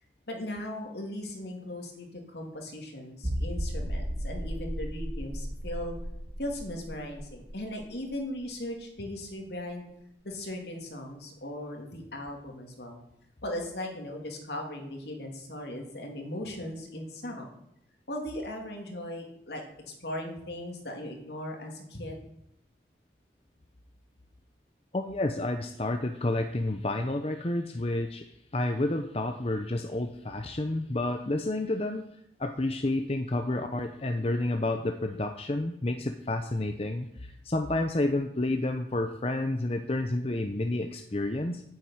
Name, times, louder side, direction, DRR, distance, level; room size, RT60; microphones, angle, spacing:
voice 1, 0.3-6.0 6.4-9.8 10.2-13.0 13.4-17.5 18.1-22.2, left 1 dB, 65° left, 2 dB, 3.0 m, -38 dB
sound 1, 3.2-8.7 9.0-9.1 9.6-9.7, equal, 35° right, 1.8 m, -35 dB
voice 2, 24.9-32.0 32.4-41.6, left 2 dB, 35° left, 6 dB, 0.7 m, -30 dB
9.6 x 7.7 x 9.4 m, 0.76 s
head